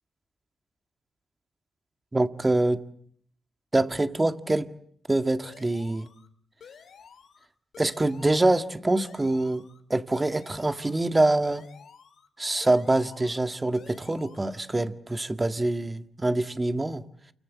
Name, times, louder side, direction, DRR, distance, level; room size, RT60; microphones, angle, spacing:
voice 1, 2.1-2.8 3.7-4.7 5.1-6.1 7.8-11.6 12.4-17.0, right 2 dB, 20° right, 1.9 m, -25 dB
sound 1, 5.4-6.3 6.6-7.5 7.7-8.6 8.9-9.8 10.1-11.0 11.4-12.3 12.6-13.5 13.7-14.6, left 7 dB, 70° left, 2.8 m, -51 dB
29.0 x 24.5 x 7.6 m
cardioid pair, 80°, 0 cm